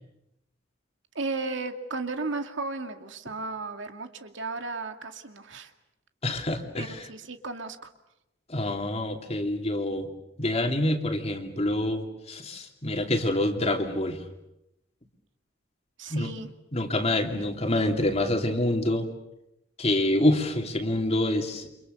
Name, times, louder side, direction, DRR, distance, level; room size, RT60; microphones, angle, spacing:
voice 1, 1.1-5.7 6.8-7.9 16.0-16.5, right 3 dB, 70° right, 6 dB, 2.3 m, -34 dB
voice 2, 6.2-7.1 8.5-10.1 10.4-14.2 16.1-16.3 16.7-19.1 19.8-21.7, left 1 dB, 30° left, 4 dB, 2.9 m, -26 dB
30.0 x 26.5 x 7.0 m, 0.87 s
head